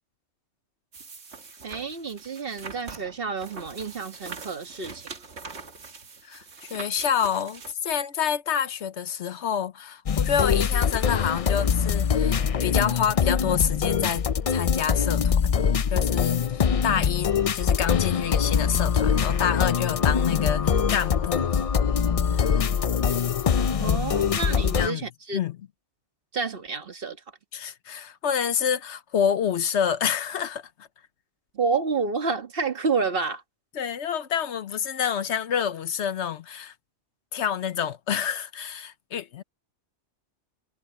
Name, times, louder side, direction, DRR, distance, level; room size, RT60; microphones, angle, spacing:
sound 1, 0.9-7.7, right 4 dB, 70° right, 2.0 m, -43 dB
voice 1, 1.6-5.0 23.8-25.4 26.3-27.2 31.5-33.4, right 4 dB, 50° right, 1.6 m, -29 dB
voice 2, 6.2-15.5 15.9-21.7 22.3-23.0 23.8-24.0 24.5-25.0 25.3-25.6 27.5-30.9 33.7-36.7 37.3-39.4, left 8 dB, 75° left, 1.1 m, -28 dB
sound 2, 10.1-24.9, left 7 dB, 50° left, 0.4 m, -23 dB
omnidirectional pair, 1.2 m